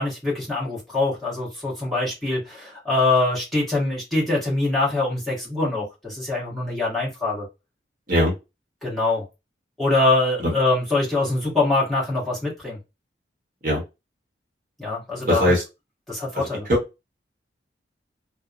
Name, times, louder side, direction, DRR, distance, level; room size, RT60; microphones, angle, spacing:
voice 1, 0.0-7.5 8.8-9.2 9.8-12.8 14.8-15.5 16.1-16.7, left 2 dB, ahead, -7 dB, 1.1 m, -23 dB
voice 2, 15.3-15.6 16.3-16.5, equal, 45° right, -2 dB, 0.9 m, -20 dB
2.8 x 2.0 x 2.4 m, 0.25 s
head